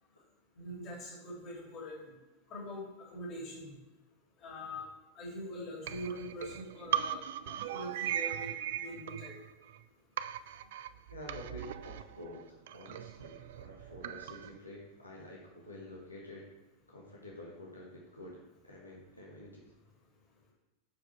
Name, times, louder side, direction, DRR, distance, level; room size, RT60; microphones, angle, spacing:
voice 1, 0.6-2.1 2.5-2.8 3.1-3.7 4.4-4.8 5.1-7.2 7.5-8.5 8.8-9.4, left 1 dB, 35° left, -3 dB, 3.0 m, -43 dB
sound 1, 5.8-9.8 10.2-14.6, right 11 dB, 55° right, 0.3 m, -39 dB
voice 2, 11.1-16.5 16.9-19.7, left 1 dB, 85° left, -4 dB, 1.5 m, -49 dB
10.0 x 5.0 x 4.7 m, 1.0 s
figure-of-eight pair, 90°, 0 cm